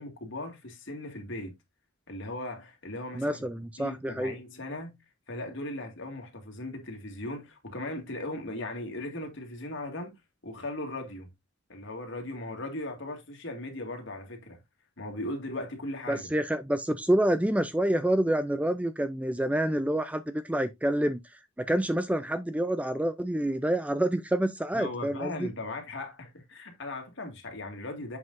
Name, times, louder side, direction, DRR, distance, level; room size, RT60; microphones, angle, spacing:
voice 1, 0.0-1.5 2.1-3.4 3.8-5.0 5.3-10.2 10.4-11.3 11.7-14.6 15.0-16.3 24.7-28.2, left 2 dB, 60° left, 2.1 m, -38 dB
voice 2, 3.2-4.3 16.1-25.5, right 1 dB, 5° right, 0.4 m, -28 dB
7.7 x 5.7 x 2.6 m
head